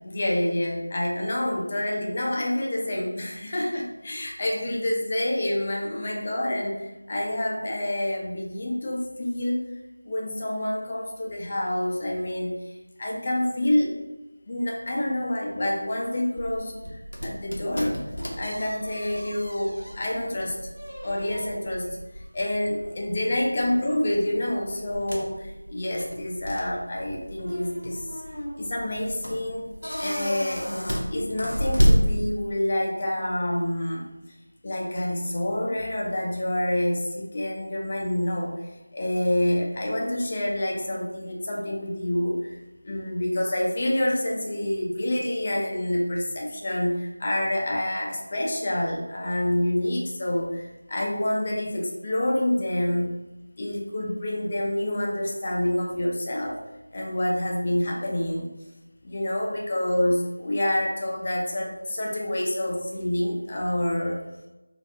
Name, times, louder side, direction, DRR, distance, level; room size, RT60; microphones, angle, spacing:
voice 1, 0.0-9.6 10.0-12.5 13.0-13.9 14.5-18.0 18.4-20.6 21.0-22.0 22.3-28.0 28.6-30.7 31.1-34.1 34.6-38.5 38.9-42.5 42.8-53.1 53.6-56.6 56.9-58.5 59.0-64.2, left 1 dB, 25° left, -1 dB, 0.5 m, -27 dB
sound 1, 16.4-32.7, equal, 85° left, 0.8 m, -30 dB
4.1 x 2.4 x 2.6 m, 1.1 s
figure-of-eight pair, 170°, 0 cm